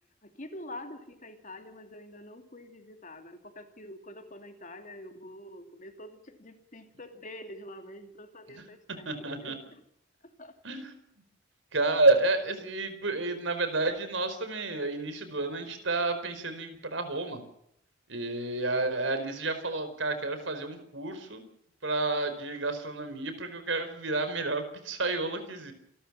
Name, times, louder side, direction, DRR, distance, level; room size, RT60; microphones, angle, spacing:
voice 1, 0.2-9.6 10.2-11.0, left 1 dB, 40° left, 6 dB, 2.7 m, -46 dB
voice 2, 9.0-9.6 10.6-10.9 11.7-17.4 18.1-21.4 21.8-25.7, right 2 dB, 75° right, 10 dB, 4.7 m, -30 dB
28.0 x 13.0 x 7.5 m, 0.74 s
head